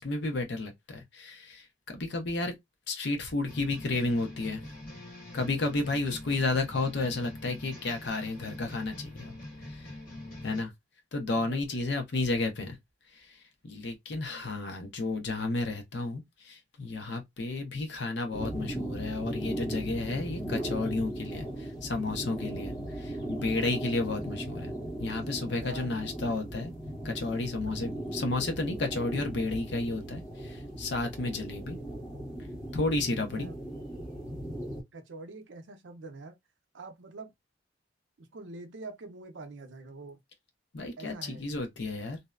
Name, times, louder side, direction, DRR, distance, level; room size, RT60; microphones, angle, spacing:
voice 1, 0.0-2.6 2.9-4.6 5.3-9.3 9.7-9.9 10.4-10.7 11.1-12.8 13.1-13.4 13.6-24.7 25.0-26.7 27.0-31.8 32.7-33.5 40.7-42.2, left 2 dB, 65° left, 0.7 m, -32 dB
sound 1, 3.5-10.6, left 1 dB, 50° left, 1.1 m, -44 dB
voice 2, 11.3-12.0 25.6-25.9 26.3-26.5 27.6-27.7 33.2-33.6 34.9-36.4 36.7-37.3 38.2-40.2 41.0-41.5, right 3 dB, 75° right, 0.6 m, -45 dB
sound 2, 18.3-34.8, right 1 dB, 20° left, 1.1 m, -38 dB
2.6 x 2.1 x 2.3 m
head